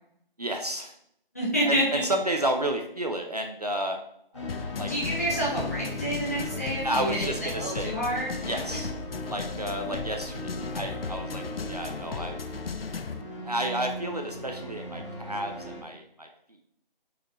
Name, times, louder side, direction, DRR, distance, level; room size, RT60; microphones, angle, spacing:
voice 1, 0.4-1.0 1.6-4.0 4.3-4.9 6.8-7.9 8.5-8.9 9.3-12.4 13.4-16.3, right 1 dB, 45° right, 3 dB, 0.7 m, -31 dB
voice 2, 1.3-1.8 4.9-7.3 7.5-8.4, right 1 dB, 15° left, -7 dB, 1.3 m, -28 dB
sound 1, 4.3-15.8, equal, 30° left, 1.6 m, -38 dB
sound 2, 4.5-13.2, left 5 dB, 80° left, 0.6 m, -36 dB
8.5 x 4.9 x 3.0 m, 0.72 s
figure-of-eight pair, 180°, 29 cm